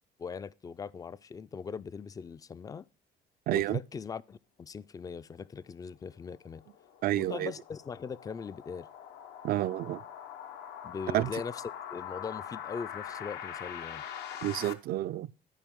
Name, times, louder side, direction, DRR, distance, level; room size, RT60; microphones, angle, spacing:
voice 1, 0.2-2.9 3.5-6.6 7.2-8.9 10.8-11.6 11.9-14.0, left 6 dB, 20° left, 0.4 m, -40 dB
voice 2, 3.5-3.8 7.0-7.5 9.4-10.0 11.1-11.3 14.4-15.3, right 14 dB, 60° right, 0.4 m, -29 dB
sound 1, 6.1-14.7, left 9 dB, 80° left, 0.9 m, -43 dB
13.0 x 5.0 x 3.6 m
cardioid pair, 110°, 17 cm